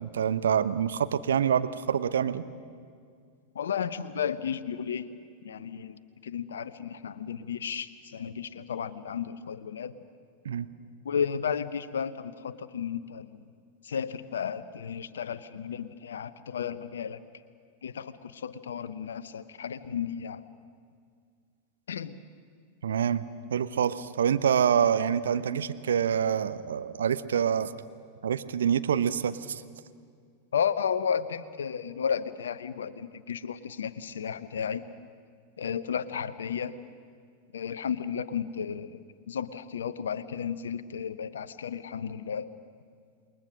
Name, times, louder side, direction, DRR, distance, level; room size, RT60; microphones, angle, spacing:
voice 1, 0.0-2.4 10.4-10.7 22.8-23.2 23.5-27.7 28.2-29.6, right 8 dB, 65° right, 12 dB, 0.8 m, -26 dB
voice 2, 3.5-5.1 5.4-9.9 11.0-13.3 13.8-17.2 17.8-20.4 21.9-22.1 30.5-34.8 35.6-36.7 37.5-39.0 39.3-42.5, left 7 dB, 65° left, 13 dB, 0.9 m, -33 dB
28.0 x 21.5 x 6.5 m, 2.1 s
figure-of-eight pair, 90°, 0 cm